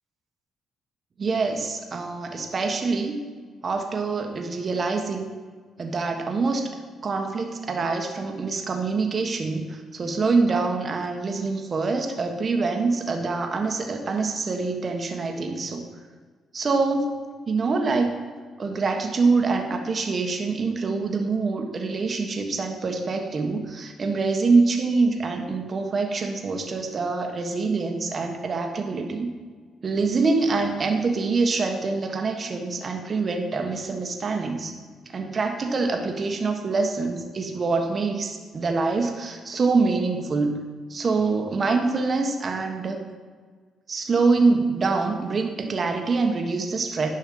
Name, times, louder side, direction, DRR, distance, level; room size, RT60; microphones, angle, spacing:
voice 1, 1.2-3.2 3.6-5.3 5.8-6.7 7.0-15.8 16.5-17.2 17.5-18.1 18.6-29.3 29.8-34.7 35.1-40.6 40.9-43.0 43.9-47.1, right 4 dB, 40° right, 4 dB, 1.3 m, -25 dB
10.5 x 5.6 x 5.4 m, 1.5 s
cardioid pair, 90°, 0 cm